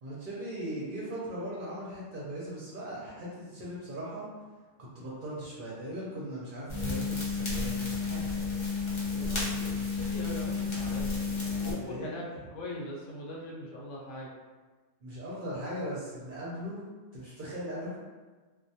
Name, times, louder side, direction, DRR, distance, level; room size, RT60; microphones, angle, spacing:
voice 1, 0.0-4.3 4.8-8.5 11.8-12.2 15.0-16.8 17.1-18.0, equal, 55° right, -7 dB, 0.6 m, -39 dB
sound 1, 6.7-11.7, left 4 dB, 40° left, 0.4 m, -31 dB
voice 2, 9.1-11.2 11.6-12.3 12.5-14.3, left 1 dB, 75° left, -3 dB, 0.9 m, -41 dB
2.1 x 2.1 x 2.7 m, 1.3 s
omnidirectional pair, 1.3 m